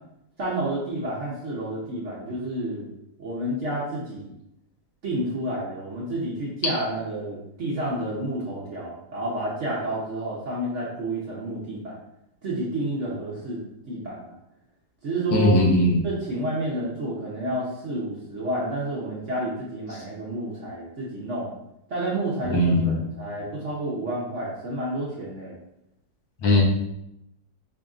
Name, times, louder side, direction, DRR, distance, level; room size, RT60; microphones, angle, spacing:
voice 1, 0.4-2.9 3.2-4.3 5.0-12.0 12.4-13.6 13.9-14.4 15.0-15.5 16.0-21.5 21.9-25.6, right 1 dB, 55° right, -6 dB, 0.8 m, -30 dB
voice 2, 15.3-16.0 22.5-22.9 26.4-26.6, left 1 dB, 80° left, -1 dB, 1.5 m, -19 dB
5.1 x 2.6 x 2.4 m, 0.83 s
omnidirectional pair, 2.0 m